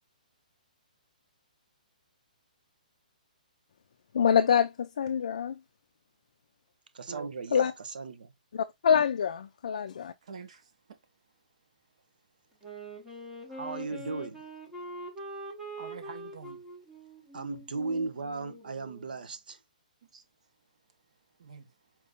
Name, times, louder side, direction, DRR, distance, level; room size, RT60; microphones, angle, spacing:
voice 1, 4.1-5.5 7.5-7.7 8.5-10.1, left 7 dB, 45° left, 0.4 m, -25 dB
voice 2, 6.9-8.3 13.5-14.5 17.3-19.6, right 4 dB, 80° right, 0.8 m, -36 dB
voice 3, 10.2-10.6 13.9-14.0 15.8-16.6 20.1-20.2 21.4-21.7, right 5 dB, 45° right, 0.9 m, -45 dB
Wind instrument woodwind instrument, 12.6-19.2, right 1 dB, 5° right, 0.7 m, -44 dB
4.5 x 2.6 x 3.4 m
hypercardioid pair, 180°, 5 cm